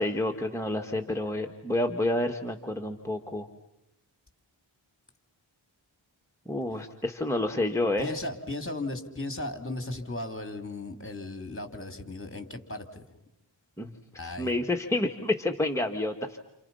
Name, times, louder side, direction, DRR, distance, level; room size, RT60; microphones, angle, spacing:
voice 1, 0.0-3.5 6.5-8.1 13.8-13.9 14.2-16.4, left 1 dB, 5° left, 3 dB, 2.0 m, -29 dB
voice 2, 8.0-13.0 14.1-14.5, left 2 dB, 25° left, 6 dB, 3.5 m, -36 dB
29.5 x 29.5 x 5.7 m, 0.90 s
cardioid pair, 40°, 47 cm